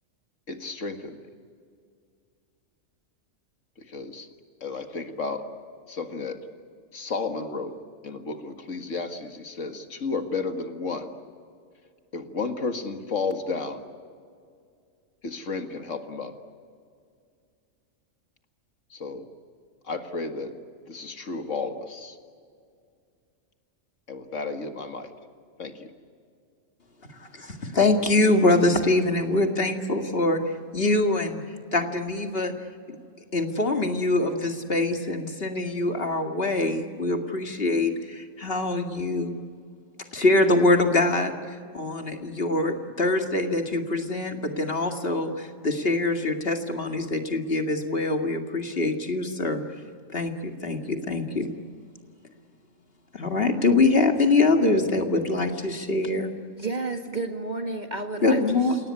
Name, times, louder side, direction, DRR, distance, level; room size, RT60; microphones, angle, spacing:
voice 1, 0.5-1.3 3.8-4.3 4.6-5.5 5.9-6.4 6.9-7.8 8.0-11.1 12.1-13.8 15.2-16.3 18.9-19.3 19.8-20.5 20.9-22.2 24.1-25.1 25.6-25.9, left 4 dB, 70° left, 6 dB, 2.2 m, -32 dB
voice 2, 27.2-30.4 30.7-31.4 31.7-32.5 32.9-33.0 33.3-39.3 40.1-49.6 50.1-51.5 53.1-56.3 58.2-58.8, left 2 dB, 50° left, 4 dB, 2.3 m, -24 dB
voice 3, 56.6-58.7, right 3 dB, 35° right, 5 dB, 1.8 m, -31 dB
29.5 x 18.0 x 9.7 m, 2.2 s
omnidirectional pair, 1.3 m